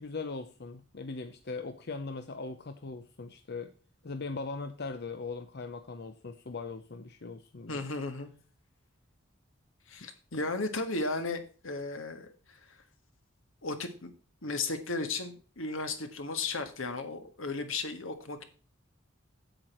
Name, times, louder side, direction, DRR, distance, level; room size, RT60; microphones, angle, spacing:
voice 1, 0.0-3.7 4.0-7.8 10.0-10.4, left 3 dB, 55° left, 8 dB, 0.7 m, -40 dB
voice 2, 7.7-8.3 9.9-12.8 13.6-14.1 14.4-18.4, left 3 dB, 80° left, 8 dB, 1.7 m, -35 dB
8.8 x 8.2 x 4.4 m, 0.38 s
head